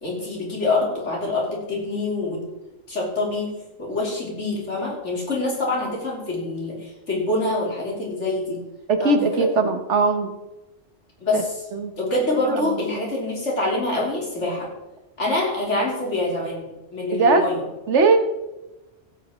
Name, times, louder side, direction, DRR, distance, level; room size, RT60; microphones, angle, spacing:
voice 1, 0.0-2.5 2.9-3.5 3.8-8.7 9.0-9.5 11.2-11.6 12.0-14.7 15.2-16.7 16.9-17.7, left 2 dB, 80° left, -2 dB, 3.5 m, -25 dB
voice 2, 8.9-10.3 11.3-11.4 11.7-11.9 12.4-12.6 17.1-17.5 17.9-18.2, right 3 dB, 75° right, 7 dB, 1.5 m, -19 dB
15.5 x 8.1 x 4.3 m, 1.0 s
omnidirectional pair, 1.2 m